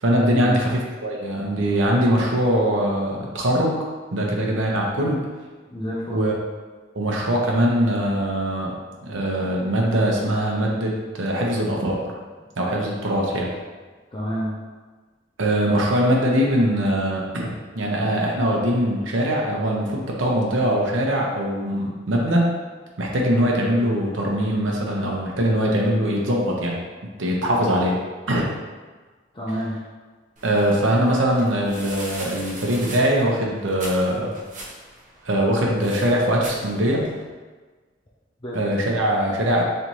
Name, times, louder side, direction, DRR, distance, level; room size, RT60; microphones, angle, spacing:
voice 1, 0.0-3.7 4.1-5.2 6.1-6.3 6.9-8.7 9.0-12.0 12.6-13.5 15.4-22.5 23.0-26.8 27.2-28.0 28.3-28.5 30.4-34.3 35.2-37.0 38.5-39.6, equal, 85° right, -2 dB, 0.8 m, -22 dB
voice 2, 5.7-6.3 12.4-12.5 14.1-14.6 29.3-29.8 38.4-38.9, equal, 25° left, -6 dB, 0.6 m, -29 dB
sound 1, 30.4-37.2, right 1 dB, 45° right, 0.9 m, -40 dB
4.1 x 3.4 x 3.0 m, 1.4 s
head